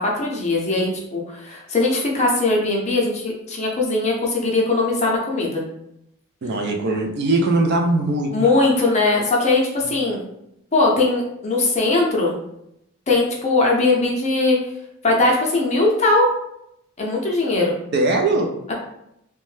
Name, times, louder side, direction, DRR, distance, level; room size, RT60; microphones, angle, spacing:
voice 1, 0.0-5.6 8.3-10.2 10.7-12.4 13.1-14.6 15.0-16.3 17.0-17.8 18.7-18.8, left 2 dB, 30° left, -2 dB, 0.5 m, -20 dB
voice 2, 6.4-8.3 17.9-18.5, right 2 dB, 50° right, 3 dB, 0.4 m, -20 dB
2.6 x 2.1 x 3.2 m, 0.80 s
head